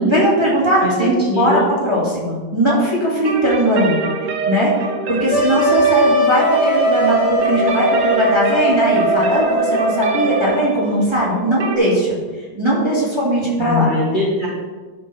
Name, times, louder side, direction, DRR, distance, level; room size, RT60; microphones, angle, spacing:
voice 1, 0.0-4.0 4.5-4.7 5.1-12.2 12.5-13.9, equal, 15° right, -6 dB, 1.8 m, -19 dB
voice 2, 0.8-1.6 13.6-14.5, left 1 dB, 25° left, -6 dB, 1.5 m, -20 dB
sound 1, 3.2-11.8, right 4 dB, 65° right, 0.7 m, -26 dB
Wind instrument woodwind instrument, 5.3-10.8, right 1 dB, 90° left, 2.9 m, -18 dB
11.0 x 4.4 x 4.3 m, 1.3 s
omnidirectional pair, 2.2 m